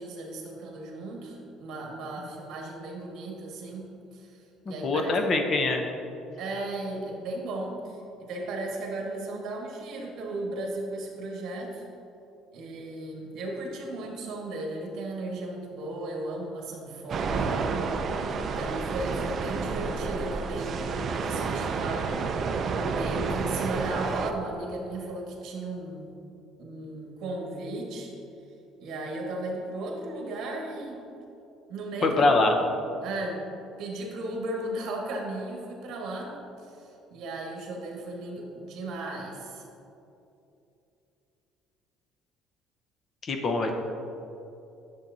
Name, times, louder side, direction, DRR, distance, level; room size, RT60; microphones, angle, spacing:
voice 1, 0.0-4.4 4.7-5.1 6.4-11.8 12.5-17.6 18.2-22.1 22.8-26.2 26.6-28.1 28.8-31.1 31.7-32.7 33.0-33.5 33.8-39.6, right 2 dB, 55° right, -1 dB, 1.5 m, -36 dB
voice 2, 4.7-5.8 32.0-32.6 43.2-43.8, left 2 dB, 30° left, 4 dB, 0.6 m, -24 dB
sound 1, 17.1-24.3, right 4 dB, 35° right, 0.4 m, -30 dB
10.5 x 6.8 x 2.7 m, 2.8 s
cardioid pair, 170°, 0 cm